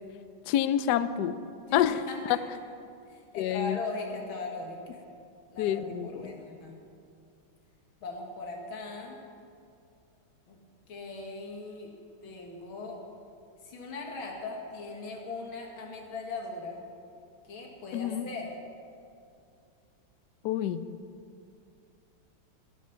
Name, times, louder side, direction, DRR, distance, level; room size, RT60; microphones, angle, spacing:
voice 1, 0.5-1.4 1.7-2.0 3.4-3.8 5.6-6.3 17.9-18.2 20.4-20.8, left 10 dB, 85° left, 13 dB, 0.9 m, -27 dB
voice 2, 1.7-2.4 3.1-5.1 5.5-6.8 8.0-9.2 10.5-10.6 10.9-11.9 12.2-13.0 13.6-16.8 17.5-18.5, left 3 dB, 70° left, 1 dB, 2.4 m, -39 dB
17.5 x 7.5 x 5.8 m, 2.4 s
omnidirectional pair, 2.4 m